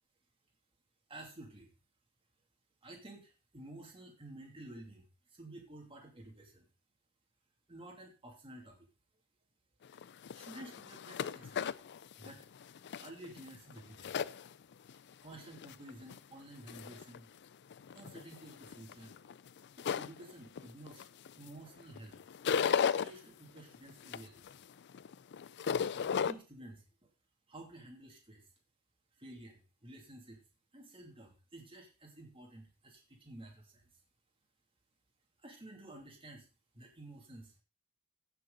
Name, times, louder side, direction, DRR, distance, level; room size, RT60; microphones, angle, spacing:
voice 1, 1.1-1.7 2.8-6.7 7.7-8.9 10.3-11.6 12.2-14.2 15.2-17.3 17.9-19.1 19.8-21.1 21.4-22.2 22.8-24.5 25.8-27.1 27.5-28.5 29.2-30.4 30.7-33.8 35.4-36.5 36.7-37.5, right 1 dB, 25° right, 0 dB, 2.8 m, -52 dB
sound 1, 9.9-14.9 15.3-16.2 16.7-17.2 17.7-21.5 21.8-23.1 23.6-26.3, left 7 dB, 50° left, 0.4 m, -36 dB
15.5 x 6.7 x 4.0 m, 0.32 s
head